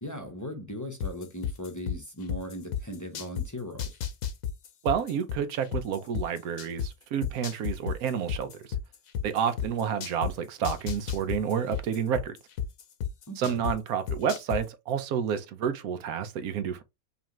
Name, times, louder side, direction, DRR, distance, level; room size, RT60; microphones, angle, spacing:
voice 1, 0.0-4.0 13.3-13.6, left 1 dB, 20° left, 0.6 m, -38 dB
sound 1, 1.0-3.5 3.8-6.9 7.2-10.3 10.6-13.7 14.1-14.6, left 9 dB, 70° left, 1.1 m, -31 dB
voice 2, 4.8-8.7 9.2-12.4 13.4-16.8, right 8 dB, 80° right, 1.1 m, -30 dB
5.5 x 2.5 x 3.0 m
omnidirectional pair, 1.5 m